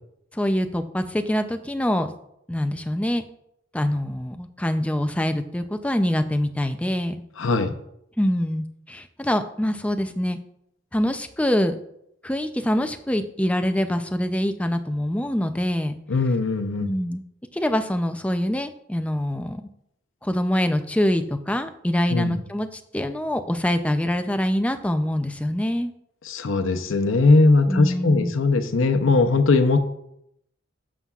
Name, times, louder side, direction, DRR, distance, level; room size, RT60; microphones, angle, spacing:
voice 1, 0.3-2.1 2.5-3.2 3.7-7.2 8.2-10.4 10.9-11.8 12.2-16.0 16.8-17.2 17.5-19.7 20.2-25.9 27.7-28.3, left 1 dB, 5° left, 8 dB, 0.4 m, -25 dB
voice 2, 7.4-7.8 16.1-16.9 22.1-22.4 26.3-29.8, left 3 dB, 80° left, 8 dB, 0.7 m, -19 dB
11.0 x 7.3 x 2.4 m, 0.77 s
head